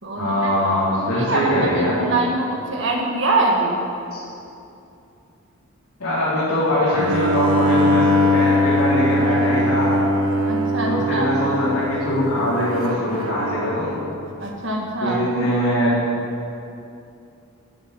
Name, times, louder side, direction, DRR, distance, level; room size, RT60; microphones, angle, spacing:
voice 1, 0.2-2.0 4.1-4.2 6.0-10.0 10.9-14.0 15.0-15.9, left 1 dB, 90° left, -10 dB, 3.9 m, -22 dB
voice 2, 0.9-3.8 10.5-11.3 14.4-15.2, right 2 dB, 55° right, -1 dB, 1.9 m, -23 dB
Bowed string instrument, 6.9-14.0, left 1 dB, 75° right, 1.2 m, -21 dB
13.0 x 8.0 x 9.7 m, 2.7 s
head